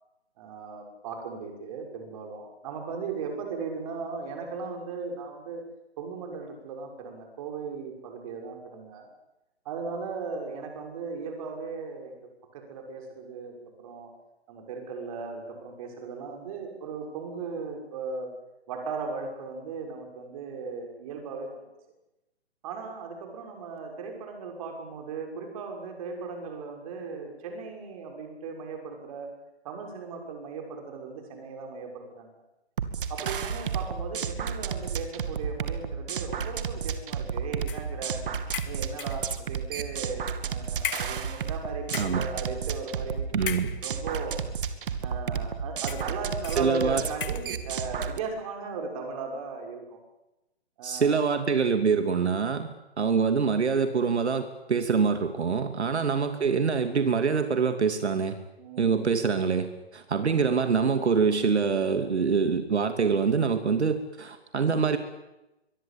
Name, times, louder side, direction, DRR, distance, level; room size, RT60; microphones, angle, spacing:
voice 1, 0.4-5.6 6.0-9.1 9.6-14.1 14.5-18.3 18.7-21.6 22.6-29.3 29.6-32.3 33.1-38.2 38.6-43.2 43.8-44.4 45.0-50.0 50.8-51.2 55.8-56.1 58.6-59.1, right 4 dB, 30° right, 2 dB, 6.5 m, -37 dB
sound 1, 32.8-48.2, right 7 dB, 50° right, 2.4 m, -32 dB
sound 2, 37.7-37.9 38.5-39.3 40.1-40.3 40.8-41.6 41.9-42.3 43.4-44.1 44.9-45.0 45.8-46.2 46.4-46.7 47.2-47.5, left 8 dB, 55° left, 2.3 m, -36 dB
voice 2, 41.9-42.3 43.3-43.7 46.6-47.0 50.8-52.7 53.0-58.3 58.8-65.0, right 5 dB, 80° right, 8 dB, 2.7 m, -25 dB
23.5 x 23.0 x 8.9 m, 0.97 s
hypercardioid pair, 160°, 33 cm